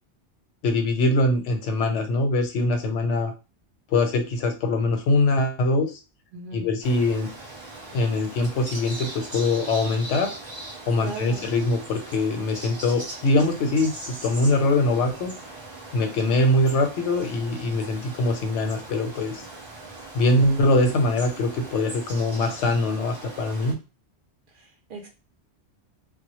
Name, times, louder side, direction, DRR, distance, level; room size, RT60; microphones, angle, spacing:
voice 1, 0.6-3.3 3.9-6.0 6.5-7.3 7.9-10.3 10.9-15.3 15.9-19.4 20.1-23.8, left 2 dB, 90° left, 5 dB, 0.9 m, -23 dB
voice 2, 6.3-6.7 11.0-11.5 24.5-25.1, right 3 dB, 60° right, 2 dB, 0.6 m, -38 dB
sound 1, 6.8-23.7, right 2 dB, 25° right, 0.7 m, -40 dB
2.1 x 2.0 x 2.9 m, 0.29 s
omnidirectional pair, 1.2 m